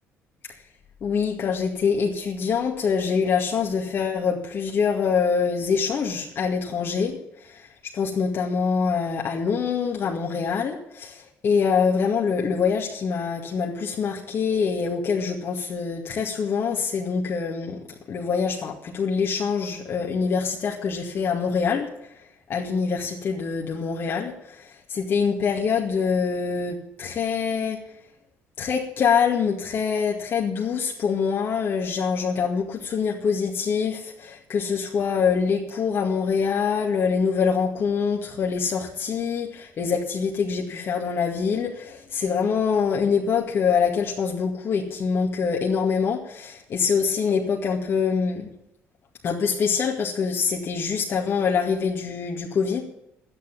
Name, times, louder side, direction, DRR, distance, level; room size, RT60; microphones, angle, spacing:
voice 1, 1.0-17.8 18.1-22.2 22.5-27.8 28.6-48.5 49.2-52.8, left 6 dB, 50° left, -1 dB, 2.2 m, -25 dB
12.0 x 10.5 x 7.4 m, 0.81 s
cardioid pair, 100°, 5 cm